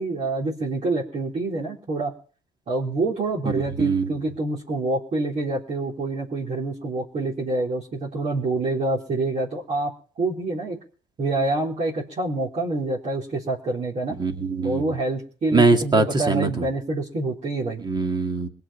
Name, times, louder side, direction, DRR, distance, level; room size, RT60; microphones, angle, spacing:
voice 1, 0.0-2.1 2.7-9.9 10.2-10.8 11.2-14.2 14.6-17.8, right 2 dB, 45° right, -4 dB, 4.0 m, -26 dB
voice 2, 3.5-4.2 14.2-14.8 15.5-16.7 17.8-18.5, right 3 dB, 25° right, 5 dB, 2.3 m, -22 dB
21.5 x 7.8 x 5.8 m, 0.40 s
cardioid pair, 110°, 17 cm